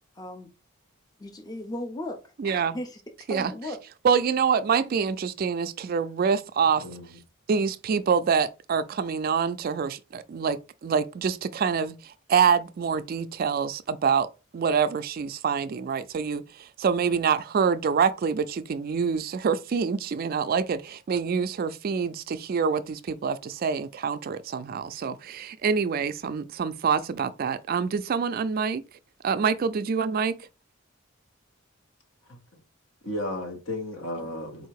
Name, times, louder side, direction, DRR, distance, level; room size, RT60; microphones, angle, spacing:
voice 1, 0.2-0.5 1.2-3.0 3.3-3.8, left 1 dB, 20° left, 0.5 m, -36 dB
voice 2, 2.4-2.8 3.3-3.5 4.0-6.8 7.5-14.3 14.5-28.8 29.2-30.3, right 6 dB, 45° right, 0.3 m, -26 dB
voice 3, 6.8-7.2 33.0-34.7, left 1 dB, 65° left, 1.4 m, -33 dB
4.1 x 2.7 x 4.6 m
head